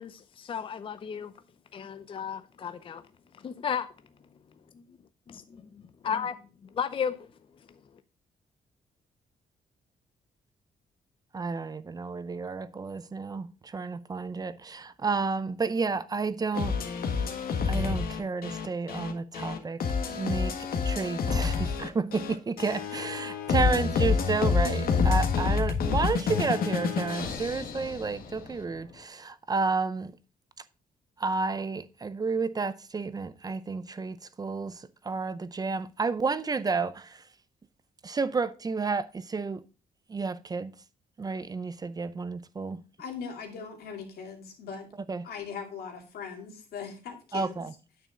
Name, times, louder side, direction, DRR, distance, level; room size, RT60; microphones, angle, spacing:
voice 1, 0.0-1.3 1.7-3.0 3.4-3.9 5.3-7.3, left 7 dB, 35° left, 0.6 m, -34 dB
voice 2, 11.3-16.8 17.6-20.6 20.8-30.2 31.2-37.2 38.0-39.6 40.1-40.7 41.2-42.8 45.1-45.3 47.3-47.7, right 4 dB, 25° right, 0.5 m, -31 dB
sound 1, 16.5-28.5, left 5 dB, 70° left, 1.5 m, -28 dB
voice 3, 43.0-44.9 45.2-47.7, left 6 dB, 90° left, 2.4 m, -40 dB
9.2 x 6.6 x 3.7 m
cardioid pair, 145°, 16 cm